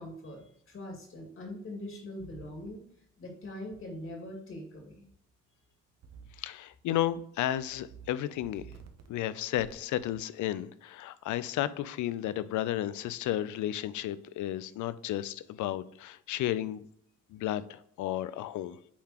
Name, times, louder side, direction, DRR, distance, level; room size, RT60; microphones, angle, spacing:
voice 1, 0.0-2.8 3.2-5.0, left 1 dB, 45° left, 0 dB, 2.3 m, -42 dB
sound 1, 2.2-2.7 3.7-3.8 6.0-6.5 6.9-7.2 7.6-8.1 8.4-9.1 9.6-10.0, right 7 dB, 60° right, 0.9 m, -51 dB
voice 2, 6.4-8.6 9.1-16.8 17.3-18.8, left 12 dB, 75° left, 16 dB, 0.5 m, -33 dB
8.4 x 3.8 x 3.0 m, 0.68 s
cardioid pair, 90°, 30 cm